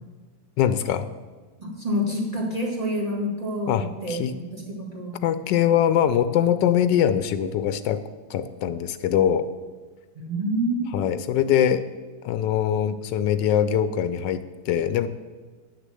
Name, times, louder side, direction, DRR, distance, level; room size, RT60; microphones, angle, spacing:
voice 1, 0.6-1.1 3.7-4.3 5.2-8.0 8.3-9.5 10.9-11.8 12.2-15.1, left 9 dB, 90° left, 12 dB, 1.2 m, -22 dB
voice 2, 1.6-5.2 10.2-11.0, equal, 20° right, -1 dB, 1.8 m, -28 dB
9.6 x 6.6 x 7.6 m, 1.4 s
omnidirectional pair, 1.9 m